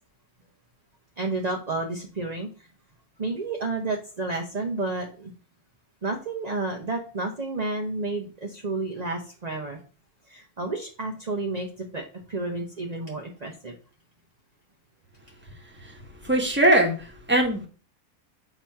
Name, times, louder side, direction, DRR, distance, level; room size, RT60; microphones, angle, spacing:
voice 1, 1.2-2.7 3.2-5.3 6.0-9.8 10.3-13.7, right 3 dB, 35° right, 1 dB, 0.9 m, -31 dB
voice 2, 15.8-17.7, right 1 dB, 10° right, 2 dB, 1.2 m, -22 dB
6.8 x 3.0 x 5.7 m, 0.38 s
omnidirectional pair, 1.5 m